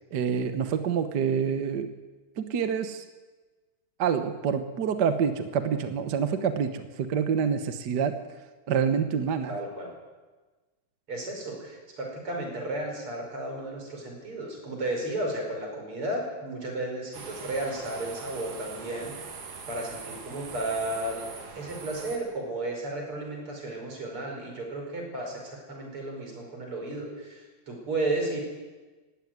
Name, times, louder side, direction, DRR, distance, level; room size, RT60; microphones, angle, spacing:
voice 1, 0.1-1.9 2.4-3.0 4.0-8.2 8.7-9.6, right 7 dB, 60° right, 9 dB, 1.1 m, -27 dB
voice 2, 9.5-9.9 11.1-21.3 21.5-28.4, right 1 dB, 45° right, 1 dB, 6.3 m, -33 dB
sound 1, 17.1-22.2, right 5 dB, 85° right, 3.9 m, -42 dB
19.0 x 16.0 x 9.5 m, 1.3 s
omnidirectional pair, 3.4 m